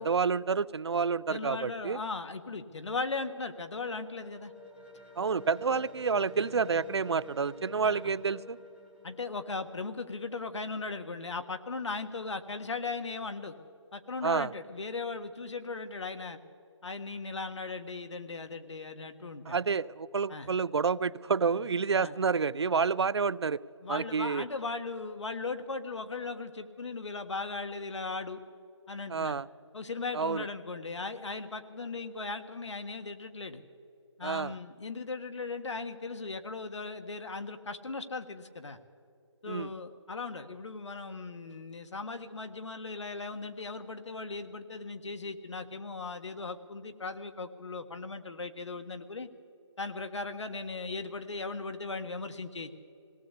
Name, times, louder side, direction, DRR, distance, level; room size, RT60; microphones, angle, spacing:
voice 1, 0.0-2.0 5.2-8.6 14.2-14.5 19.5-23.6 23.9-24.5 29.1-29.5 30.1-30.5 34.2-34.5 39.5-39.7, right 5 dB, 60° right, 19 dB, 0.5 m, -29 dB
voice 2, 1.3-4.5 5.7-5.8 7.8-8.1 9.0-13.6 13.9-16.4 16.8-19.6 20.3-20.5 22.0-22.2 23.8-28.4 28.9-29.4 29.7-33.6 34.2-38.8 39.4-49.3 49.8-52.7, left 3 dB, 70° left, 8 dB, 1.7 m, -38 dB
sound 1, 3.5-10.6, left 1 dB, ahead, 0.4 m, -50 dB
18.5 x 18.0 x 8.4 m, 2.5 s
hypercardioid pair, 175°, 16 cm